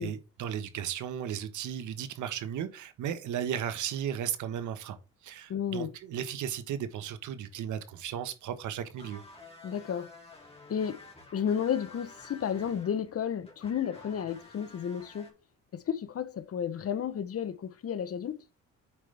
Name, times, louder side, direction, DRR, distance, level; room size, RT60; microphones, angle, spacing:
voice 1, 0.0-5.0 5.2-9.2, right 9 dB, 80° right, 1.3 m, -35 dB
voice 2, 5.5-5.9 9.6-10.1 10.7-11.0 11.3-15.3 15.7-18.4, left 8 dB, 50° left, 1.0 m, -32 dB
sound 1, 9.0-15.3, left 3 dB, 20° left, 3.0 m, -51 dB
8.3 x 5.2 x 3.4 m
cardioid pair, 90°, 30 cm